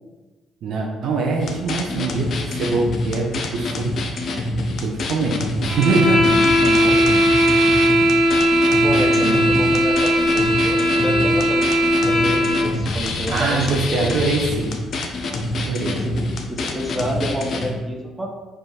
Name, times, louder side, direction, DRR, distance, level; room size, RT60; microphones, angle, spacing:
voice 1, 0.6-3.9 4.8-6.5 8.9-9.5 13.3-14.8 15.6-16.0, right 3 dB, 65° right, 0 dB, 0.6 m, -23 dB
sound 1, 1.4-17.7, left 2 dB, 55° left, 0.6 m, -26 dB
sound 2, 5.7-12.7, equal, 45° right, 1.4 m, -18 dB
voice 2, 6.6-7.3 8.8-11.7 12.1-14.2 15.9-16.1 16.5-18.3, equal, 15° right, 0 dB, 1.0 m, -29 dB
4.6 x 2.4 x 4.1 m, 1.2 s
hypercardioid pair, 50°, 0 cm